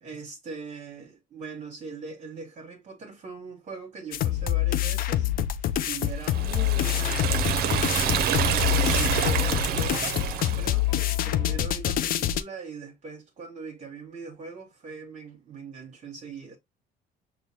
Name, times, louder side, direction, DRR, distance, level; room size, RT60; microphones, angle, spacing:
voice 1, 0.0-5.3 5.6-16.6, right 4 dB, 45° right, 1.2 m, -41 dB
sound 1, 4.1-12.4, left 12 dB, 60° left, 0.4 m, -26 dB
Liquid, 6.2-10.8, right 8 dB, 65° right, 0.6 m, -27 dB
sound 2, 6.3-11.6, left 2 dB, 20° left, 1.4 m, -45 dB
6.0 x 2.2 x 2.8 m
cardioid pair, 110°, 17 cm